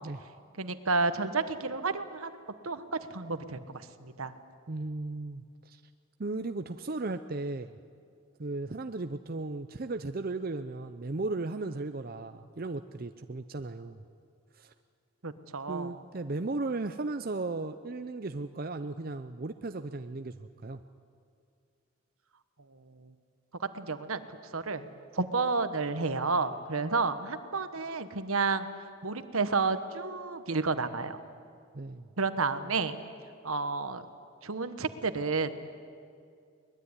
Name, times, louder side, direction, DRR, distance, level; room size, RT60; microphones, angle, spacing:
voice 1, 0.6-2.3 2.6-3.6 4.0-4.3 15.2-16.0 23.6-24.2 24.5-24.8 25.1-28.7 29.0-31.2 32.2-33.0 33.4-34.0 34.4-35.5, right 4 dB, 75° right, 11 dB, 1.3 m, -30 dB
voice 2, 4.7-5.8 6.2-7.7 8.4-14.0 14.5-14.7 15.7-20.8 31.7-32.1, right 2 dB, 40° right, 9 dB, 0.6 m, -36 dB
23.0 x 21.0 x 9.8 m, 2.3 s
head